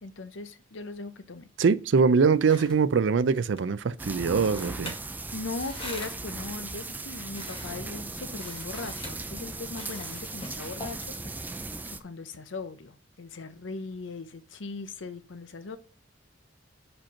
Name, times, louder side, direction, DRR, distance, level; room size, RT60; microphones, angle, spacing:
voice 1, 0.0-1.5 5.3-11.3 11.9-15.8, left 3 dB, 80° left, 0.8 m, -39 dB
voice 2, 1.6-4.9, right 5 dB, 75° right, 0.4 m, -23 dB
sound 1, 2.1-11.8, left 1 dB, 30° left, 2.1 m, -46 dB
sound 2, 4.0-12.0, right 3 dB, 10° right, 0.4 m, -38 dB
5.2 x 4.4 x 5.7 m
head